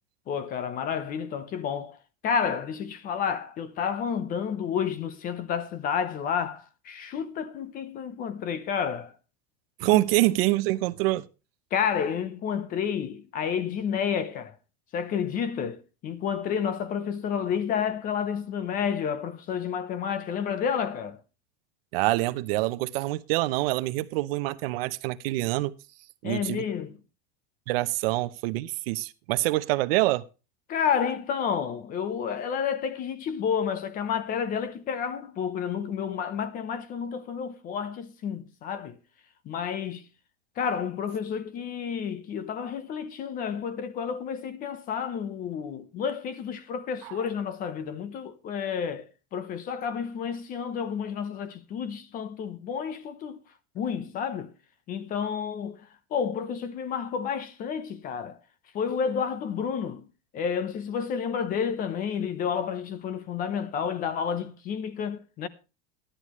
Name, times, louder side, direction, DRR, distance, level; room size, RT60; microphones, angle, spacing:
voice 1, 0.3-2.0 2.2-9.1 9.9-10.0 11.7-14.5 14.9-21.2 26.2-27.0 30.7-39.0 39.4-40.1 40.6-53.4 53.7-54.5 54.9-55.8 56.1-58.4 58.7-60.1 60.3-65.5, left 7 dB, 25° left, 0.8 m, -30 dB
voice 2, 9.8-11.3 21.9-25.7 26.2-26.6 27.7-30.2 47.0-47.2, right 19 dB, 65° right, 0.8 m, -26 dB
15.0 x 11.5 x 3.1 m
supercardioid pair, 170°, 32 cm